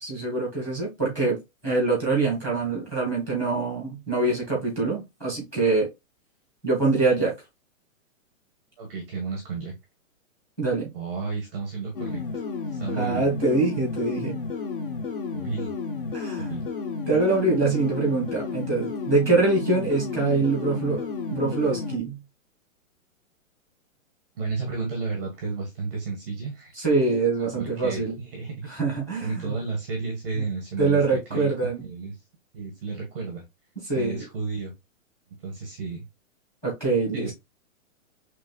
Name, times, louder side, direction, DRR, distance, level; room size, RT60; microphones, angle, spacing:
voice 1, 0.0-5.9 6.6-7.3 10.6-10.9 12.9-14.4 16.1-16.5 17.1-21.0 21.3-22.2 26.8-28.1 28.7-29.5 30.3-30.4 30.8-31.9 33.9-34.2 36.6-37.3, right 3 dB, 5° left, 1.1 m, -24 dB
voice 2, 8.8-9.7 10.9-13.3 15.3-15.7 16.4-16.6 24.4-26.7 27.5-28.5 29.2-32.1 32.5-33.4 33.9-34.7 35.4-36.0 37.1-37.3, right 4 dB, 10° right, 0.6 m, -32 dB
sound 1, 12.0-22.0, left 4 dB, 40° left, 0.6 m, -32 dB
5.2 x 3.1 x 2.3 m
hypercardioid pair, 175°, 41 cm